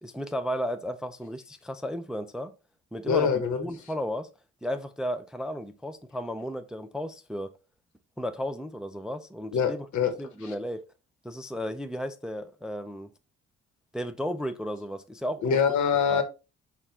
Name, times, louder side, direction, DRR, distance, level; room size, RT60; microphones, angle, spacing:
voice 1, 0.0-2.5 2.9-4.3 4.6-7.5 8.2-9.9 10.2-10.8 11.2-13.1 13.9-15.6 16.1-16.2, equal, ahead, 0.4 m, -34 dB
voice 2, 3.1-3.7 9.5-10.1 10.4-10.5 15.4-16.2, left 7 dB, 70° left, 1.1 m, -24 dB
5.7 x 2.5 x 3.4 m
cardioid pair, 90°, 30 cm